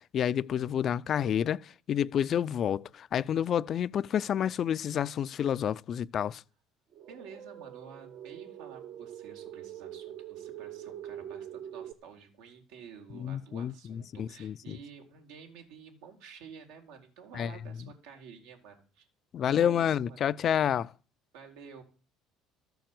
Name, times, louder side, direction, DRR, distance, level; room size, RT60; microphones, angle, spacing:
voice 1, 0.1-6.4 13.2-14.8 17.4-17.5 19.3-20.9, left 9 dB, 50° left, 0.5 m, -29 dB
sound 1, 6.9-11.9, right 10 dB, 55° right, 1.1 m, -44 dB
voice 2, 7.1-19.1 19.5-20.3 21.3-21.8, right 6 dB, 85° right, 4.1 m, -50 dB
14.0 x 7.0 x 7.7 m
supercardioid pair, 90°, 0 cm